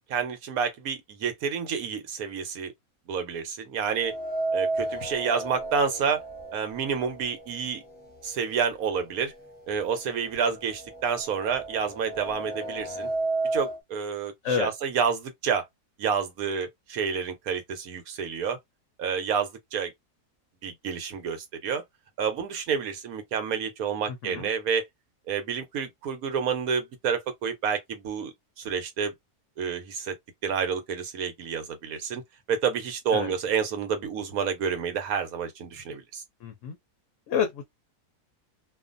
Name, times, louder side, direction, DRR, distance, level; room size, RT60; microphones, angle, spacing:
voice 1, 0.1-2.7 3.1-4.1 4.5-6.2 6.5-7.8 8.2-9.3 9.7-13.1 13.5-15.6 16.0-18.6 19.0-19.9 20.6-21.8 22.2-24.8 25.3-29.1 29.6-30.1 30.4-32.2 32.5-36.2, right 6 dB, 70° right, 1.2 m, -29 dB
sound 1, 4.0-8.0 8.4-8.5 9.5-9.6 9.9-13.8, right 2 dB, 15° left, 0.4 m, -33 dB
voice 2, 24.1-24.5 33.1-33.3 36.4-36.8 37.3-37.6, left 7 dB, 65° left, 0.8 m, -29 dB
2.5 x 2.5 x 2.5 m
omnidirectional pair, 1.7 m